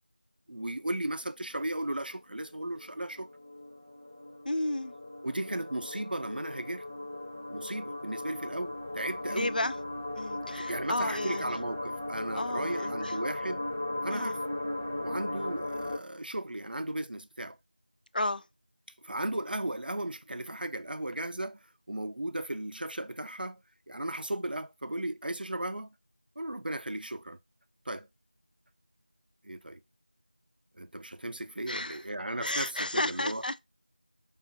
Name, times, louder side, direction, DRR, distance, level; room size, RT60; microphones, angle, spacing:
voice 1, 0.5-3.3 5.2-6.9 7.5-9.6 10.5-13.7 14.0-14.4 15.0-17.6 19.0-25.9 26.4-27.4 27.9-28.1 29.4-29.8 30.8-33.4, right 1 dB, 90° right, 0.4 m, -36 dB
sound 1, 0.7-1.3 1.6-1.7 1.8-16.0, left 1 dB, 25° right, 0.4 m, -37 dB
voice 2, 4.5-4.9 9.3-9.7 10.1-11.5 12.3-13.1 14.1-14.3 18.1-18.4 31.7-32.0 32.4-33.6, left 1 dB, 70° left, 0.3 m, -32 dB
4.8 x 2.4 x 2.6 m
figure-of-eight pair, 180°, 5 cm